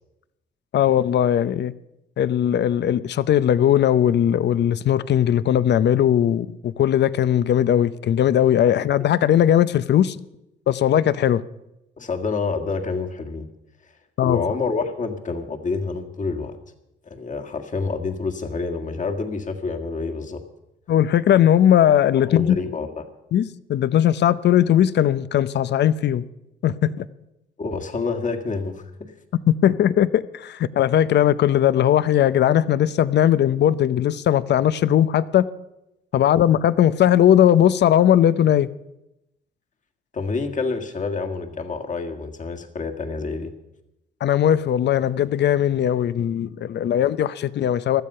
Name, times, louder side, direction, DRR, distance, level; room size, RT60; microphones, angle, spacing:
voice 1, 0.7-1.7 2.2-10.2 10.7-11.4 14.2-14.4 20.9-22.6 23.3-26.2 26.6-27.1 29.5-35.5 36.1-38.7 44.2-48.0, left 10 dB, 60° left, 17 dB, 0.7 m, -19 dB
voice 2, 12.0-13.5 14.2-16.6 17.1-20.4 22.2-23.0 27.6-29.1 40.1-43.5, left 4 dB, 40° left, 5 dB, 1.8 m, -28 dB
16.0 x 12.5 x 5.6 m, 0.88 s
cardioid pair, 90°, 20 cm